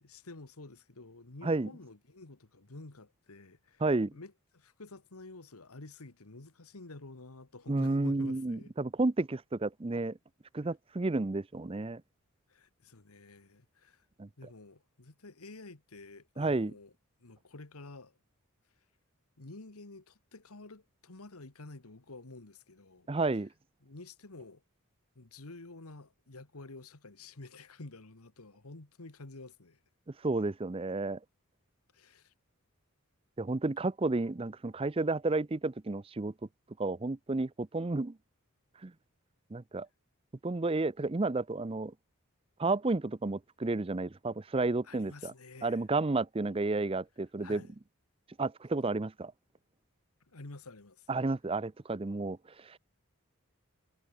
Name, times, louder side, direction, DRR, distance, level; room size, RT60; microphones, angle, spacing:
voice 1, 0.0-3.8 4.1-8.7 12.5-14.0 14.4-16.9 17.2-18.2 19.4-23.1 23.8-24.6 25.1-29.8 31.9-32.3 44.8-45.8 47.4-47.7 50.2-51.1, left 2 dB, 90° left, 1.7 m, -50 dB
voice 2, 3.8-4.1 7.7-10.2 10.5-12.0 14.2-14.3 16.4-16.7 23.1-23.5 30.2-31.2 33.4-36.3 36.8-38.2 38.8-38.9 39.5-39.9 40.4-41.9 42.6-45.3 45.6-47.6 48.4-49.3 51.1-52.8, right 3 dB, 25° right, 0.5 m, -31 dB
head